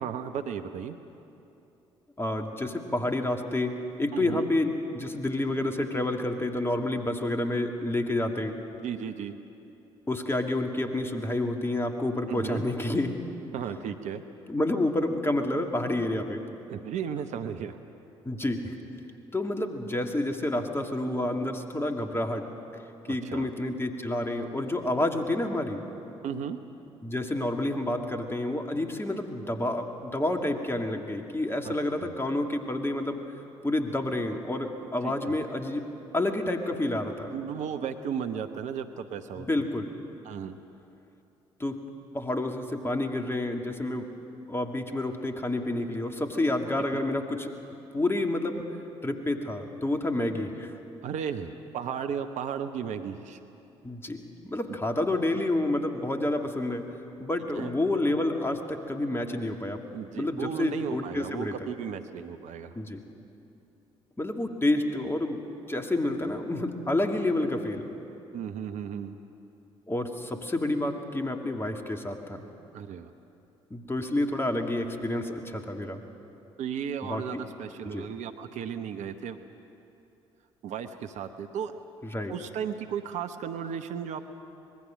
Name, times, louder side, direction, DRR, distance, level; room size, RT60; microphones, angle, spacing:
voice 1, 0.0-1.0 4.1-4.5 8.8-9.3 12.3-12.6 13.5-14.2 16.7-17.8 23.1-23.5 26.2-26.6 31.6-32.1 35.0-35.3 37.3-39.5 40.2-40.6 46.9-47.0 51.0-53.4 54.7-54.8 57.5-57.7 59.9-62.8 68.3-69.1 72.7-73.1 76.6-79.4 80.6-81.8 82.3-84.2, right 8 dB, 55° right, 8 dB, 1.0 m, -35 dB
voice 2, 2.2-8.6 10.1-13.1 14.5-16.5 18.2-18.8 19.3-22.5 23.1-25.8 27.0-33.2 33.6-35.8 36.1-37.3 39.4-39.9 41.6-41.8 42.1-44.1 44.5-47.5 47.9-48.7 49.0-50.7 53.8-56.9 57.2-59.8 60.1-61.6 62.8-63.0 64.2-65.4 65.7-67.9 69.9-72.4 73.7-76.0 77.0-77.4 77.8-78.1 82.0-82.3, left 1 dB, 15° left, 4 dB, 2.3 m, -29 dB
25.0 x 20.5 x 6.5 m, 2.8 s
figure-of-eight pair, 45°, 14 cm